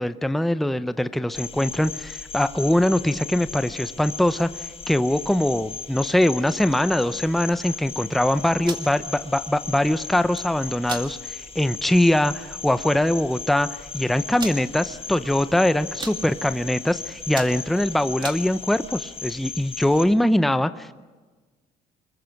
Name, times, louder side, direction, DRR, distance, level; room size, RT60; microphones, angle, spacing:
voice 1, 0.0-13.7 13.9-20.9, left 1 dB, ahead, 12 dB, 0.7 m, -22 dB
Cricket, 1.3-20.0, left 6 dB, 35° left, 5.0 m, -37 dB
sound 1, 8.5-8.9 10.1-10.4 10.8-11.1 11.6-11.7 12.0-12.3 13.1-13.2 13.3-13.4 14.4-14.6 15.2-15.6 15.8-16.2 16.7-16.9 17.2-18.4, right 4 dB, 25° right, 2.2 m, -35 dB
25.5 x 22.0 x 5.9 m, 1.3 s
cardioid pair, 110°, 17 cm